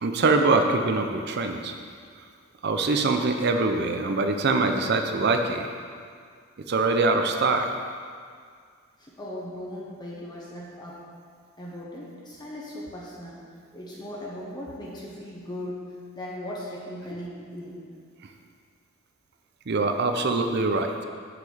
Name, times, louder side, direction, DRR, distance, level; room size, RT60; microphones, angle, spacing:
voice 1, 0.0-1.7 2.6-5.7 6.7-7.7 19.7-21.0, right 3 dB, 55° right, 5 dB, 0.5 m, -23 dB
voice 2, 9.0-11.0 11.6-13.4 13.7-17.9, left 1 dB, 20° left, -5 dB, 1.1 m, -38 dB
5.9 x 5.8 x 7.0 m, 2.1 s
head